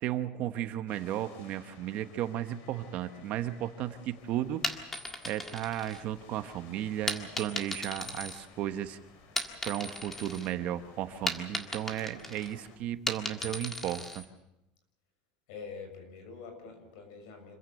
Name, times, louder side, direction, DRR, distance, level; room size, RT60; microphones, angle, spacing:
voice 1, 0.0-4.6 5.2-9.0 9.6-14.3, right 12 dB, 40° right, 10 dB, 1.1 m, -34 dB
sound 1, 0.9-12.8, left 5 dB, 55° left, 3.4 m, -55 dB
sound 2, 4.5-6.4 7.1-8.9 9.2-10.5 10.8-14.3, left 1 dB, 10° left, 1.7 m, -37 dB
voice 2, 13.3-13.6 15.5-17.6, left 5 dB, 75° left, 6 dB, 6.9 m, -46 dB
26.5 x 15.5 x 8.0 m, 0.92 s
cardioid pair, 180°, 4 cm